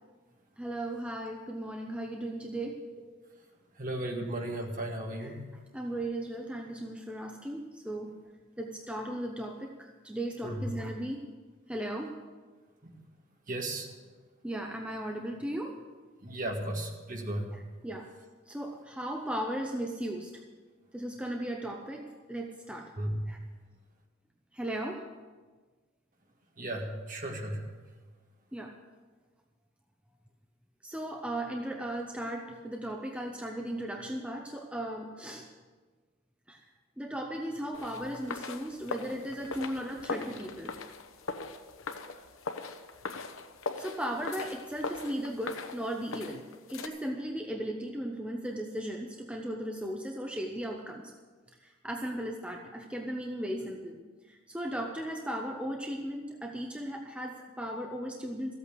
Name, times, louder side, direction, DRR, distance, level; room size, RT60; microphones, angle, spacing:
voice 1, 0.6-2.8 5.2-5.4 5.7-8.1 8.6-11.2 11.7-12.2 14.4-15.8 17.5-18.1 18.5-20.3 20.9-22.9 23.3-23.4 24.5-25.0 28.5-28.7 30.8-35.5 36.5-36.6 37.0-40.8 43.8-51.1 51.6-54.0 54.3-58.5, right 1 dB, 5° right, 2 dB, 0.8 m, -36 dB
voice 2, 3.8-5.4 10.4-10.7 12.8-12.9 13.5-13.9 16.2-17.6 23.0-23.1 26.6-27.7, right 1 dB, 40° right, 2 dB, 1.9 m, -35 dB
sound 1, 37.7-46.9, left 4 dB, 80° left, 0.9 m, -40 dB
14.5 x 8.5 x 7.5 m, 1.4 s
head